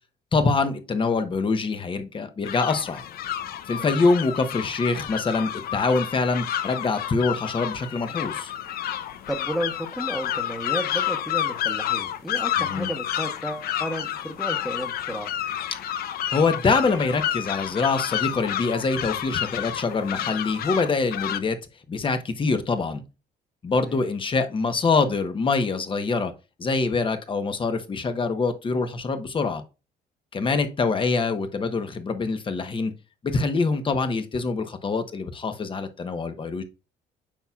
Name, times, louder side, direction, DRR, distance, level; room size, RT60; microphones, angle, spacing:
voice 1, 0.3-3.0 3.7-8.5 12.6-12.9 16.3-21.6 21.9-23.0 23.6-26.3 26.6-29.6 30.3-32.9 33.2-36.6, left 4 dB, 30° left, 1.2 m, -25 dB
sound 1, 2.4-21.4, left 11 dB, 65° left, 0.7 m, -30 dB
voice 2, 9.3-15.3 23.7-24.0 30.4-30.6, equal, ahead, 1.2 m, -33 dB
8.8 x 5.6 x 2.5 m
cardioid pair, 110°, 17 cm